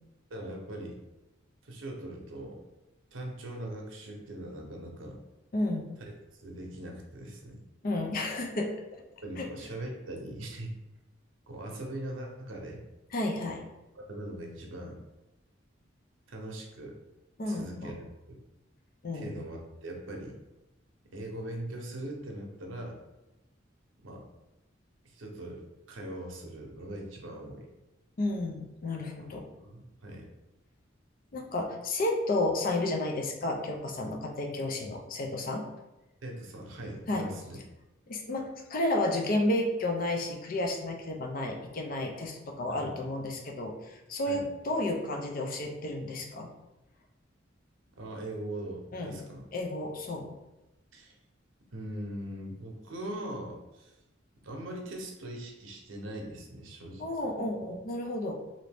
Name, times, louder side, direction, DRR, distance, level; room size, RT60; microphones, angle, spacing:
voice 1, 0.3-1.0 1.6-2.6 3.1-5.2 6.0-6.1 6.4-7.6 9.2-10.7 11.5-12.8 13.9-15.0 16.3-17.0 17.5-18.4 19.1-20.3 21.1-23.0 24.0-24.3 25.0-25.6 25.9-27.7 29.2-30.3 36.2-37.6 42.7-43.0 44.3-44.4 48.0-49.4 50.9-51.1 51.7-54.0 54.4-57.3, right 1 dB, 90° right, 1 dB, 0.7 m, -41 dB
voice 2, 5.5-5.9 7.8-9.0 9.4-9.5 13.1-13.6 17.4-17.9 19.0-19.3 28.2-29.5 31.3-35.7 37.1-37.3 38.1-46.5 48.9-49.1 49.5-50.3 57.0-58.4, left 1 dB, 45° left, 2 dB, 0.5 m, -32 dB
3.0 x 2.6 x 3.4 m, 0.98 s
head